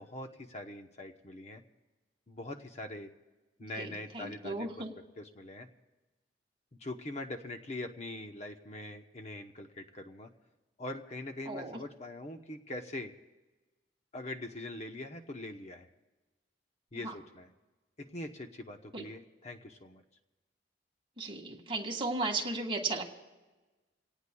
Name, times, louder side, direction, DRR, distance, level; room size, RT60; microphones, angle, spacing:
voice 1, 0.0-1.6 2.3-3.1 3.6-4.7 5.2-5.7 6.8-10.3 10.8-13.1 14.1-15.9 16.9-17.5 18.0-20.0, left 1 dB, 40° left, 5 dB, 0.9 m, -42 dB
voice 2, 3.8-4.9 11.5-11.8 17.0-17.1 18.9-19.1 21.2-23.0, right 3 dB, 30° right, 1 dB, 1.9 m, -35 dB
28.0 x 18.0 x 2.3 m, 1.2 s
head